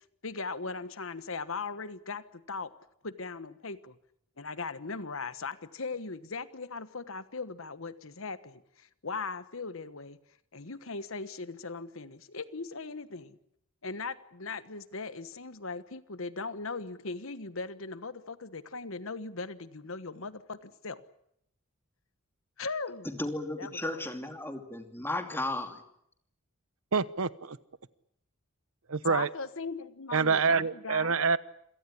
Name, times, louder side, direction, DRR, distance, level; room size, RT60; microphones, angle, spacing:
voice 1, 0.2-2.7 3.0-4.0 4.4-10.2 10.5-13.4 13.8-21.0 22.6-23.1 23.6-24.1 29.1-31.2, left 4 dB, 65° left, 14 dB, 1.3 m, -39 dB
voice 2, 23.0-25.8, left 1 dB, 10° left, 6 dB, 2.8 m, -35 dB
voice 3, 26.9-27.6 28.9-29.3 30.1-31.4, right 5 dB, 70° right, 16 dB, 1.0 m, -26 dB
27.5 x 18.0 x 10.0 m, 0.74 s
head